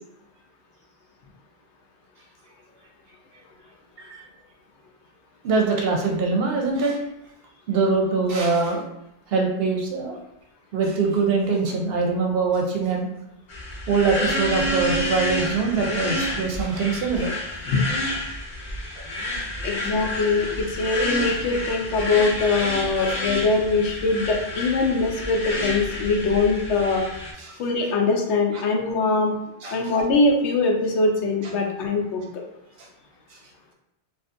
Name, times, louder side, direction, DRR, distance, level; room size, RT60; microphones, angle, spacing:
voice 1, 5.4-7.0 7.7-8.8 9.3-10.2 10.7-13.1 13.9-17.3 19.0-19.1 27.4-27.6 28.5-28.6 29.6-29.8, right 4 dB, 65° right, 1 dB, 0.7 m, -23 dB
sound 1, 13.5-27.3, left 1 dB, 50° left, 0.6 m, -29 dB
voice 2, 19.6-27.0 27.6-29.3 29.7-32.4, left 3 dB, 90° left, 1 dB, 0.9 m, -22 dB
2.5 x 2.4 x 2.4 m, 0.84 s
omnidirectional pair, 1.1 m